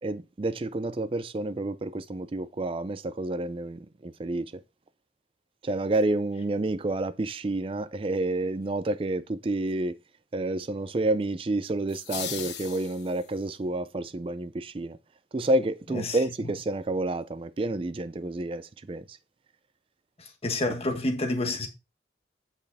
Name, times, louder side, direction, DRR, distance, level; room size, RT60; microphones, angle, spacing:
voice 1, 0.0-4.6 5.6-10.0 10.3-15.0 15.3-19.2, right 2 dB, 30° right, 0.4 m, -29 dB
sound 1, 11.9-13.5, left 9 dB, 80° left, 1.2 m, -38 dB
voice 2, 20.2-21.7, left 2 dB, 35° left, 1.5 m, -29 dB
8.6 x 5.4 x 4.1 m
head